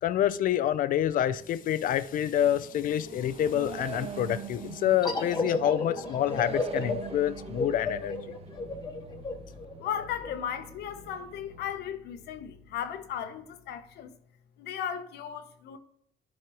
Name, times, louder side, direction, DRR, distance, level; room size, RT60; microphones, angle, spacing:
voice 1, 0.0-8.1, left 11 dB, 55° left, 0.5 m, -27 dB
sound 1, 1.1-11.7, right 7 dB, 35° right, 0.6 m, -44 dB
sound 2, 5.0-10.3, left 3 dB, 25° left, 1.0 m, -33 dB
sound 3, 6.4-14.1, left 3 dB, 80° right, 1.8 m, -53 dB
voice 2, 9.8-14.1 14.6-15.8, left 9 dB, 75° left, 0.8 m, -36 dB
12.0 x 5.1 x 3.0 m
cardioid pair, 110°, 17 cm